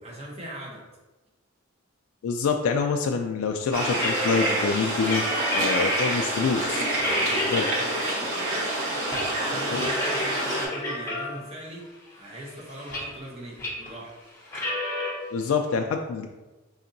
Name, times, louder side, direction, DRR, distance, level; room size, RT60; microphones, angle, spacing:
voice 1, 0.0-0.9 7.1-8.2 9.1-14.2, right 1 dB, 30° right, -3 dB, 0.7 m, -41 dB
voice 2, 2.2-5.2 5.5-6.9 7.3-7.7 9.7-9.9 15.3-16.3, left 5 dB, 90° left, 3 dB, 0.3 m, -26 dB
sound 1, 3.7-10.7, right 1 dB, 85° right, 1.2 m, -27 dB
sound 2, 3.9-6.2 6.6-6.7 7.0-7.8 8.1-9.3 9.5-11.6 12.1-13.3 13.6-13.9 14.4-15.1, left 1 dB, 15° left, 0.7 m, -31 dB
5.1 x 2.7 x 2.6 m, 1.1 s
head